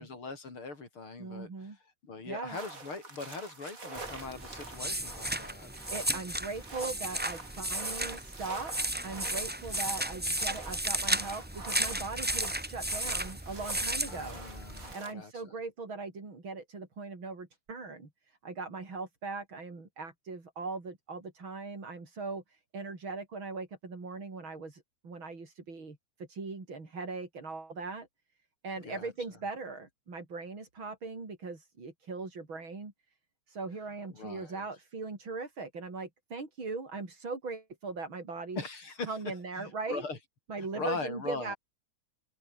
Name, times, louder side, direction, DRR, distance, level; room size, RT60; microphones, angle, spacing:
voice 1, 0.0-5.7 14.1-15.5 28.8-29.1 34.2-34.7 38.6-40.2 40.6-41.6, left 3 dB, 80° left, 5.6 m, -41 dB
voice 2, 1.2-1.8 2.3-2.6 5.9-14.4 14.9-28.1 28.6-32.9 33.5-38.6 39.1-40.0 40.5-41.6, right 4 dB, 65° right, 5.3 m, -40 dB
sound 1, 2.5-15.1, right 3 dB, 40° right, 3.9 m, -47 dB
sound 2, 3.9-14.9, right 1 dB, 5° right, 1.1 m, -34 dB
open air
omnidirectional pair, 2.3 m